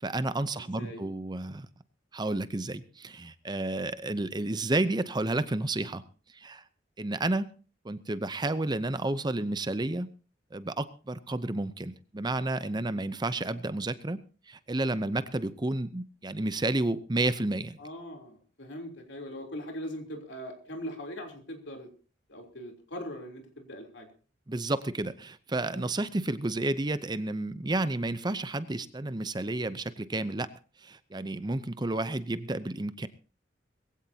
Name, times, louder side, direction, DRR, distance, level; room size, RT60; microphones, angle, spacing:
voice 1, 0.0-1.7 2.1-6.0 6.3-6.6 7.0-7.5 7.8-10.1 10.5-17.8 24.5-30.5 30.8-33.1, right 2 dB, 25° right, 13 dB, 0.7 m, -31 dB
voice 2, 0.6-1.0 17.8-21.9 22.3-24.1 25.7-25.9, equal, 75° left, 3 dB, 3.4 m, -41 dB
21.0 x 16.0 x 2.8 m, 0.36 s
head